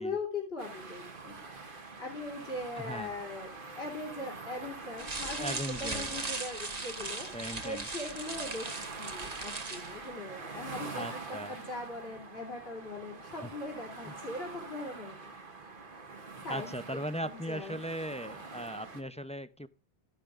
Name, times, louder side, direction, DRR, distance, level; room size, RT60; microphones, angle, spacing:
voice 1, 0.0-1.4 2.0-7.3 7.6-8.7 9.0-15.3 16.4-17.8, left 2 dB, 65° left, 3.2 m, -40 dB
sound 1, 0.6-19.0, right 3 dB, 55° right, 1.6 m, -45 dB
voice 2, 2.8-3.1 5.4-6.2 7.3-7.9 10.9-11.6 13.4-13.5 14.0-14.1 16.4-19.7, equal, 10° left, 0.3 m, -38 dB
sound 2, 5.0-10.0, right 3 dB, 40° right, 1.4 m, -38 dB
12.5 x 10.5 x 2.5 m
omnidirectional pair, 1.1 m